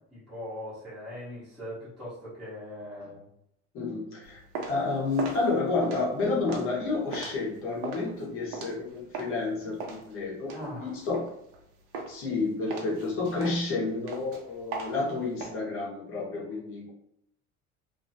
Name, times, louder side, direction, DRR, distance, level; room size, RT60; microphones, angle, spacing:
voice 1, 0.1-3.3 10.5-11.0, left 1 dB, ahead, -13 dB, 0.9 m, -40 dB
voice 2, 3.7-4.4 4.7-11.2 12.1-16.9, left 3 dB, 45° left, -4 dB, 1.0 m, -30 dB
sound 1, 4.2-9.4 9.8-11.6 11.9-12.3 12.7-15.5, right 4 dB, 85° right, 0.7 m, -38 dB
2.8 x 2.6 x 2.7 m, 0.76 s
cardioid pair, 175°, 32 cm